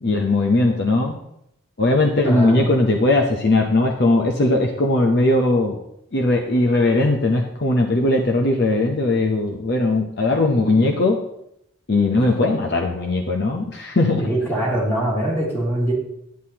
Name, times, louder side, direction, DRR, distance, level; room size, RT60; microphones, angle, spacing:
voice 1, 0.0-1.2 1.8-5.8 6.1-11.2 11.9-14.3, left 2 dB, 50° left, 1 dB, 0.7 m, -19 dB
voice 2, 2.2-2.7 14.2-15.9, right 1 dB, 10° left, -6 dB, 2.7 m, -22 dB
10.5 x 9.4 x 2.9 m, 0.79 s
head